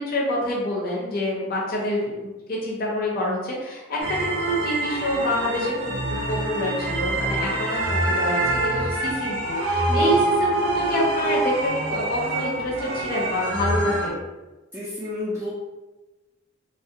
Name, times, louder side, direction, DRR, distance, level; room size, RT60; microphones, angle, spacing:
voice 1, 0.0-14.2, left 1 dB, 50° left, -3 dB, 0.6 m, -27 dB
sound 1, 4.0-14.1, right 2 dB, 80° right, 0.5 m, -25 dB
voice 2, 14.7-15.5, left 2 dB, 10° right, -9 dB, 0.4 m, -31 dB
2.3 x 2.0 x 2.7 m, 1.1 s
head